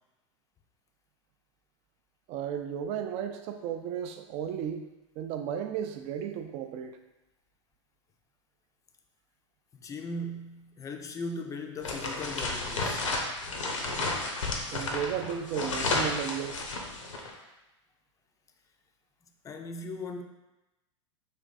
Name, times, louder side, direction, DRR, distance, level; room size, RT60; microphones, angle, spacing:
voice 1, 2.3-4.9 5.2-7.0 14.7-16.6, right 9 dB, 45° right, 7 dB, 0.4 m, -34 dB
voice 2, 9.7-13.1 19.4-20.2, left 2 dB, 20° left, 5 dB, 0.4 m, -38 dB
sound 1, 11.8-17.3, left 2 dB, 85° left, 0.7 m, -32 dB
3.5 x 2.6 x 4.0 m, 1.0 s
hypercardioid pair, 100°, 16 cm